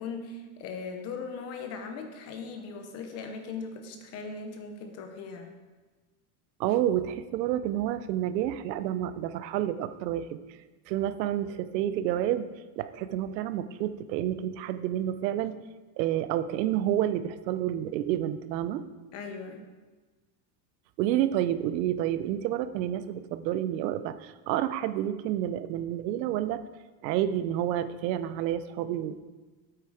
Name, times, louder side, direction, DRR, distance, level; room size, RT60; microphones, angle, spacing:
voice 1, 0.0-5.5 19.1-19.6, left 5 dB, 30° left, 5 dB, 0.9 m, -39 dB
voice 2, 6.6-10.4 10.9-12.5 12.8-15.6 16.0-18.8 21.0-26.6 27.0-29.2, right 12 dB, 90° right, 12 dB, 0.8 m, -29 dB
9.2 x 8.1 x 4.8 m, 1.3 s
supercardioid pair, 175°, 49 cm